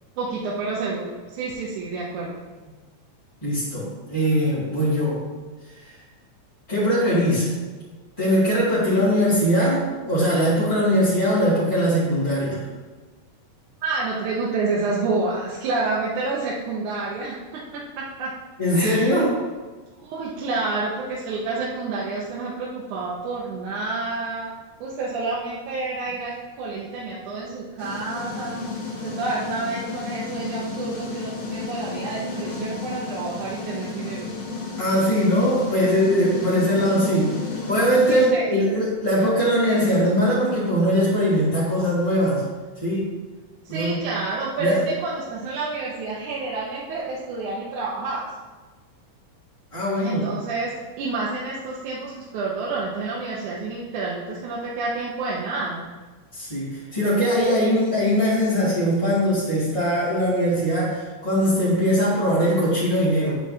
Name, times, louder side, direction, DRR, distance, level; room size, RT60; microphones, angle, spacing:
voice 1, 0.2-2.4 13.8-18.3 18.7-19.2 20.0-24.5 24.8-28.6 28.9-34.3 38.0-38.6 43.7-48.3 50.0-55.9, right 3 dB, 80° right, -5 dB, 2.4 m, -29 dB
voice 2, 3.4-5.2 5.8-5.9 6.7-7.5 8.2-12.6 18.6-19.4 34.8-37.4 37.7-42.4 42.8-43.1 43.7-44.0 44.6-44.8 49.7-50.3 56.3-63.4, equal, 10° left, -12 dB, 2.0 m, -21 dB
sound 1, 27.8-38.3, left 3 dB, 75° left, 3.2 m, -32 dB
9.1 x 8.3 x 2.8 m, 1.3 s
omnidirectional pair, 3.4 m